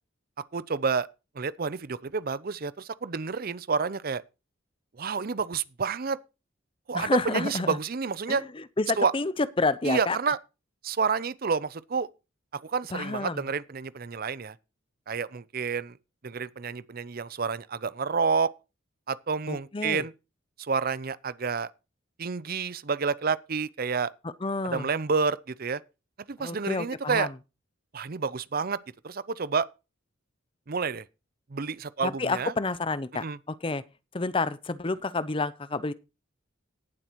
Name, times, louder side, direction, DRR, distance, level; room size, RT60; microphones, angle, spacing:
voice 1, 0.5-1.1 1.3-4.2 5.0-6.2 6.9-8.4 9.0-9.1 9.8-10.4 10.8-12.1 12.5-14.5 15.1-16.0 16.2-18.5 19.1-20.1 20.6-21.7 22.2-24.1 24.6-25.8 26.3-27.3 27.9-28.8 29.0-29.7 30.7-31.0 31.5-32.5 33.1-33.4, right 5 dB, 45° right, 0.6 m, -29 dB
voice 2, 6.9-7.7 8.3-8.4 8.8-9.3 9.6-10.2 12.9-13.4 19.5-20.0 24.4-24.9 26.4-27.3 32.0-33.2 33.6-33.8 34.1-35.9, left 3 dB, 25° left, 0.6 m, -29 dB
18.0 x 7.7 x 3.1 m
head